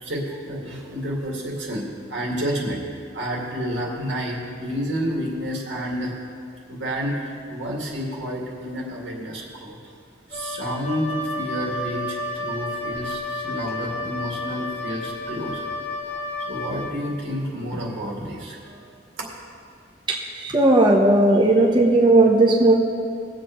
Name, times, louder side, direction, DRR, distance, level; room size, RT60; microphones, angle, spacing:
voice 1, 0.0-6.1 6.7-9.8 10.3-15.7 16.1-16.2 16.5-19.3, equal, 85° right, -3 dB, 2.3 m, -30 dB
Wind instrument woodwind instrument, 10.3-17.0, left 2 dB, 35° left, 1.1 m, -31 dB
voice 2, 20.1-22.7, right 2 dB, 25° right, -3 dB, 1.0 m, -16 dB
19.5 x 7.7 x 3.1 m, 2.3 s
head